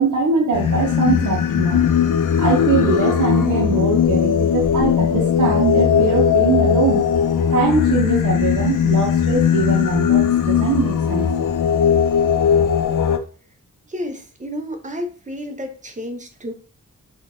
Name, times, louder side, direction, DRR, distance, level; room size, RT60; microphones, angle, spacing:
voice 1, 0.0-1.8 2.4-7.0 7.5-11.3, right 4 dB, 65° right, 1 dB, 0.7 m, -22 dB
Singing, 0.5-13.2, left 8 dB, 75° left, 0.5 m, -18 dB
voice 2, 13.9-16.5, equal, 25° right, 5 dB, 0.6 m, -31 dB
3.7 x 2.3 x 3.6 m, 0.39 s
wide cardioid pair, 145°, 32 cm